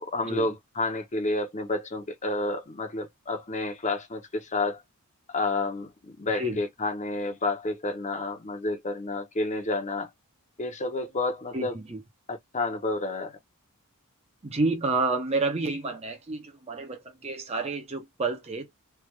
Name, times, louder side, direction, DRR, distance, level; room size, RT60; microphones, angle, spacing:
voice 1, 0.0-4.8 5.3-10.1 10.6-11.8 12.3-13.4, left 2 dB, 30° left, 0.9 m, -30 dB
voice 2, 11.5-12.0 14.4-18.7, right 3 dB, 30° right, 0.7 m, -29 dB
3.4 x 2.5 x 3.2 m
head